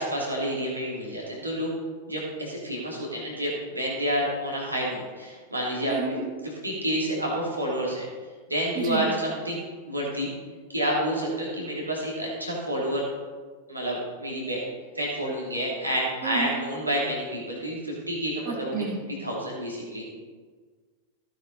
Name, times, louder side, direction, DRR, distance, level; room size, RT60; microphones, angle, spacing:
voice 1, 0.0-1.7 2.1-5.9 6.6-8.1 8.5-10.3 10.7-13.1 13.7-14.6 14.9-18.8 19.2-20.0, equal, 85° right, -3 dB, 3.0 m, -29 dB
voice 2, 5.9-6.3 8.7-9.1 16.2-16.5 18.5-19.0, right 5 dB, 35° right, -2 dB, 3.3 m, -30 dB
15.5 x 9.4 x 4.1 m, 1.5 s
figure-of-eight pair, 90°, 0 cm